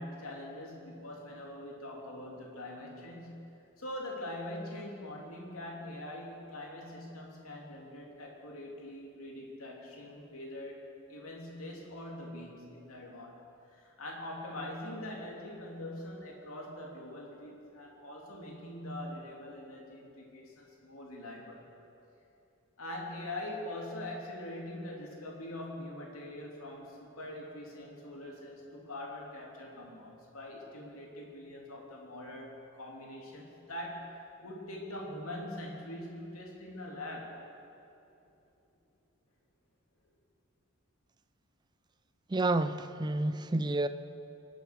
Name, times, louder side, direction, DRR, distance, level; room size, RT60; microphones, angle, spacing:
voice 1, 0.0-3.5 3.8-10.8 11.1-21.6 22.8-37.4, left 1 dB, 80° left, -1 dB, 2.9 m, -43 dB
voice 2, 42.3-43.9, right 2 dB, 20° right, 12 dB, 0.4 m, -29 dB
24.0 x 8.1 x 6.5 m, 2.8 s
head